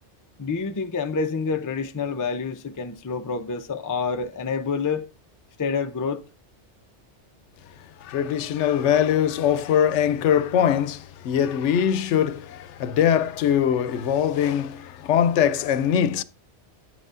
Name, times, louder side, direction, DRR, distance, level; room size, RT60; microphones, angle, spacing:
voice 1, 0.4-5.1 5.6-6.2, left 5 dB, 35° left, 0.3 m, -28 dB
voice 2, 8.0-16.2, left 9 dB, 80° left, 0.9 m, -22 dB
9.8 x 7.9 x 2.5 m
omnidirectional pair, 1.2 m